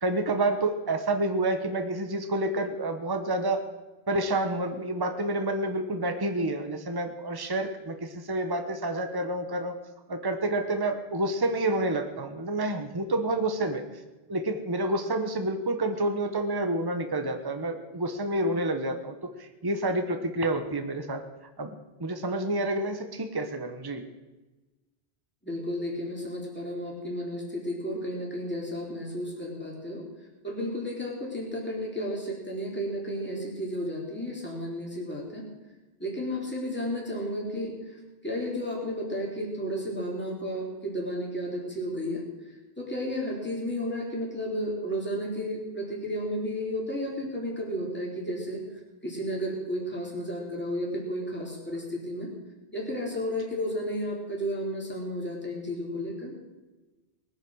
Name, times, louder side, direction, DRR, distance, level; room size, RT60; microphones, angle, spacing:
voice 1, 0.0-3.6 4.1-9.7 10.1-13.8 14.3-21.2 21.6-21.7 22.0-24.0, right 2 dB, 20° right, 6 dB, 1.1 m, -29 dB
voice 2, 25.4-30.0 30.4-35.4 36.0-42.2 42.8-48.6 49.0-52.3 52.7-56.3, equal, 10° left, -2 dB, 3.5 m, -33 dB
20.0 x 9.8 x 6.4 m, 1.1 s
omnidirectional pair, 1.1 m